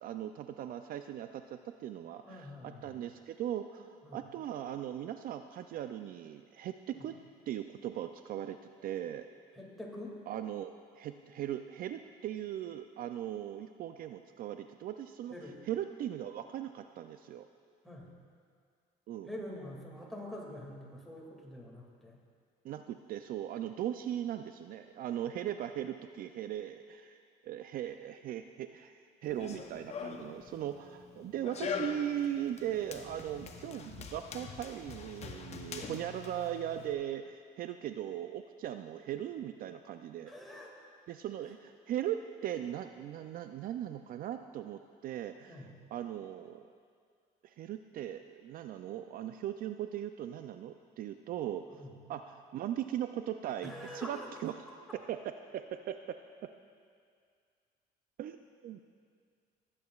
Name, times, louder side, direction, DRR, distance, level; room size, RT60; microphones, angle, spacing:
voice 1, 0.0-7.2 7.5-8.6 8.8-9.3 10.3-15.3 15.7-17.5 19.1-19.3 22.6-28.9 29.2-40.3 41.1-46.7 47.4-51.8 52.1-54.2 54.4-54.5 55.1-56.5 58.2-58.8, right 11 dB, 60° right, 8 dB, 0.4 m, -39 dB
voice 2, 2.3-3.0 4.0-4.2 9.6-10.2 15.3-15.6 17.8-18.1 19.2-22.2 40.3-40.9 45.5-45.7 51.7-51.9 53.6-54.3, left 1 dB, ahead, -3 dB, 2.2 m, -45 dB
Run, 29.2-36.9, left 5 dB, 40° left, 0.7 m, -43 dB
18.0 x 8.6 x 2.4 m, 2.1 s
cardioid pair, 110°, 17 cm